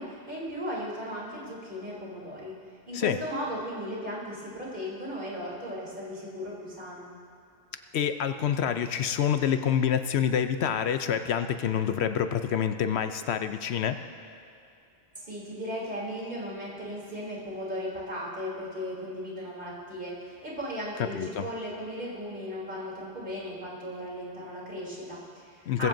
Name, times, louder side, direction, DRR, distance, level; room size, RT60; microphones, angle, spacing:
voice 1, 0.0-2.5 2.9-7.1 15.1-25.9, equal, 50° right, -5 dB, 3.4 m, -36 dB
voice 2, 7.9-14.0 21.0-21.5 25.7-25.9, left 8 dB, 75° left, 9 dB, 0.9 m, -27 dB
20.0 x 15.0 x 2.7 m, 2.6 s
omnidirectional pair, 1.1 m